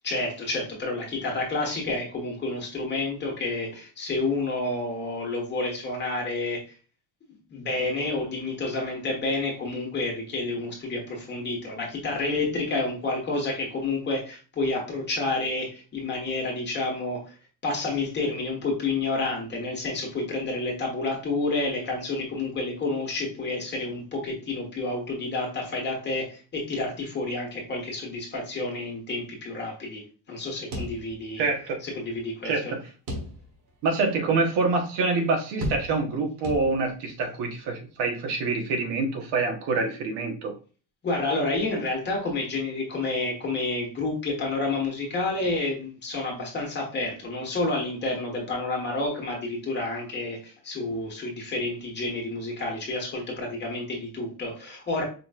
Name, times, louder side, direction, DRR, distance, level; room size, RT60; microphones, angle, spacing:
voice 1, 0.0-6.6 7.5-17.3 17.6-30.0 30.3-31.5 31.8-32.5 41.0-55.0, left 2 dB, 25° left, 0 dB, 1.4 m, -29 dB
sound 1, 30.7-31.6 31.9-32.0 33.1-33.7 34.2-34.3 35.6-36.2 36.4-37.1, equal, 55° right, 1.8 m, -34 dB
voice 2, 31.4-31.8 32.4-32.8 33.8-40.5, right 3 dB, 75° right, 2 dB, 1.3 m, -26 dB
5.2 x 3.1 x 2.4 m, 0.36 s
cardioid pair, 170°, 40 cm